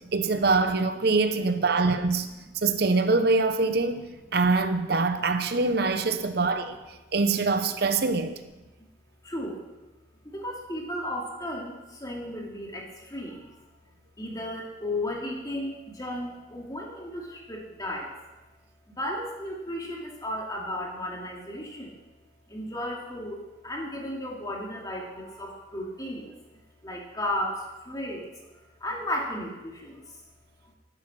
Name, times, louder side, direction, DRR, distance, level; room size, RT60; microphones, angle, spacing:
voice 1, 0.1-2.3 2.5-8.3, right 3 dB, 55° right, 0.8 m, -24 dB
voice 2, 9.2-9.6 10.2-13.6 14.2-18.1 18.9-22.0 22.5-26.4 26.8-28.2 28.8-30.2, left 1 dB, 20° left, 2.6 m, -34 dB
12.0 x 11.5 x 6.1 m
head